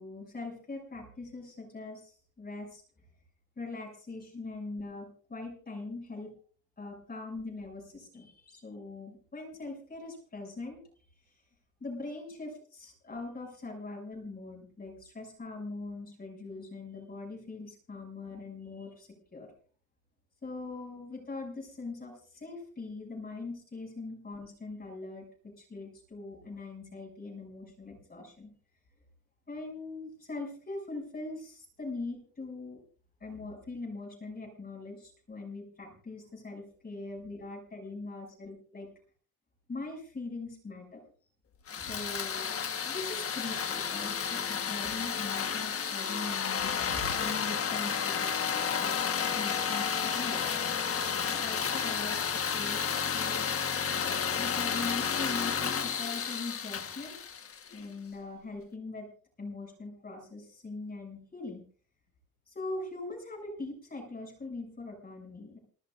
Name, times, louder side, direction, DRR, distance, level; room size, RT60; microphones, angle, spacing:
voice 1, 0.0-2.8 3.6-6.3 6.8-10.8 11.2-11.4 11.8-19.5 20.4-28.5 29.5-32.8 33.2-38.9 39.7-41.0 41.7-42.5 42.8-53.5 54.4-57.2 57.7-59.1 59.4-61.6 62.5-65.6, left 3 dB, 30° left, -1 dB, 7.1 m, -42 dB
sound 1, 41.7-57.9, left 7 dB, 45° left, 1.4 m, -32 dB
29.5 x 13.5 x 2.6 m, 0.43 s
wide cardioid pair, 165°, 32 cm